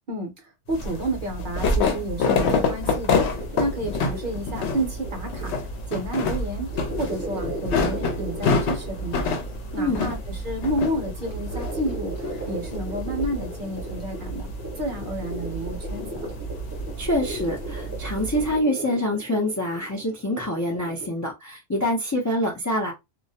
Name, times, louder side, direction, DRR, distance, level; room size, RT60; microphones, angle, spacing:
sound 1, 0.7-18.5, left 3 dB, 75° left, 0.8 m, -28 dB
voice 1, 0.7-3.2 3.6-5.5 5.9-9.3 9.7-12.1 12.5-14.5 14.8-16.3, right 1 dB, 50° right, 0.8 m, -30 dB
sound 2, 3.3-21.1, right 1 dB, 15° right, 0.6 m, -38 dB
voice 2, 9.8-10.1 17.0-22.9, left 1 dB, 25° left, 0.3 m, -26 dB
2.3 x 2.0 x 2.7 m
omnidirectional pair, 1.2 m